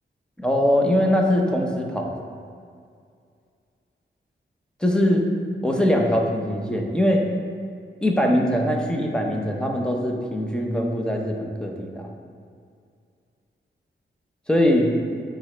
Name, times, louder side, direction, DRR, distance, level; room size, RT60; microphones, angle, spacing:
voice 1, 0.4-2.2 4.8-5.2 5.6-7.3 8.0-12.1 14.5-14.9, equal, 5° left, 1 dB, 0.6 m, -22 dB
9.7 x 3.9 x 3.3 m, 2.3 s
wide cardioid pair, 155°, 20 cm